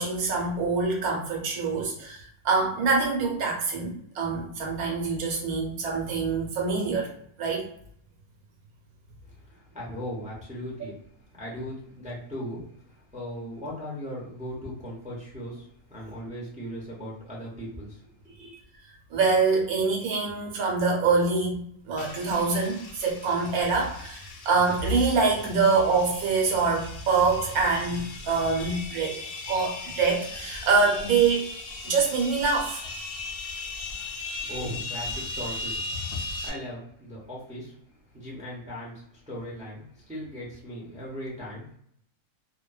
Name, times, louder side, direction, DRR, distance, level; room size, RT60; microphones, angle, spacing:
voice 1, 0.0-7.1 7.4-7.7 18.4-18.5 19.1-31.5 31.8-32.8, right 4 dB, 75° right, 0 dB, 1.2 m, -25 dB
voice 2, 9.2-11.0 11.3-18.5 34.4-35.8 36.4-37.7 38.1-41.7, equal, 10° right, -4 dB, 0.3 m, -38 dB
sound 1, 22.0-36.5, left 3 dB, 85° left, 0.5 m, -38 dB
2.4 x 2.2 x 2.2 m, 0.67 s
omnidirectional pair, 1.6 m